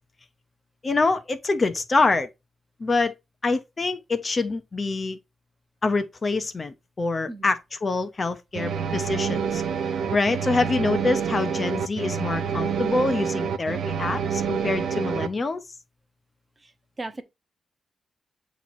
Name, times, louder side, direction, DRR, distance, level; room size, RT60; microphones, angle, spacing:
voice 1, 0.8-2.3 2.8-3.1 3.4-5.2 5.8-9.6 10.1-15.6, left 3 dB, 25° left, 0.5 m, -25 dB
voice 2, 7.2-7.5 16.6-16.7 17.0-17.2, right 2 dB, 25° right, 0.7 m, -35 dB
sound 1, 8.5-15.3, right 7 dB, 70° right, 0.7 m, -27 dB
8.2 x 3.0 x 4.0 m
wide cardioid pair, 175°, 0 cm